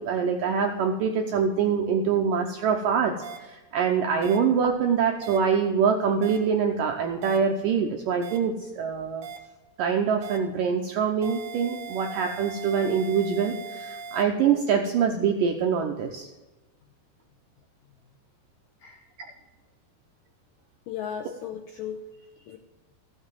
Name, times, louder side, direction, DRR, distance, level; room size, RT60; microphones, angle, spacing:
voice 1, 0.0-9.3 9.8-16.3, right 6 dB, 80° right, 2 dB, 1.9 m, -24 dB
sound 1, 3.2-3.4 4.2-4.4 5.2-5.4 6.2-6.4 7.2-7.4 8.2-8.4 9.2-9.4 10.2-10.4 11.2-14.2, right 5 dB, 60° right, 1.1 m, -39 dB
voice 2, 20.9-22.6, left 8 dB, 85° left, 4 dB, 1.9 m, -37 dB
15.5 x 6.4 x 7.4 m, 1.2 s
omnidirectional pair, 4.9 m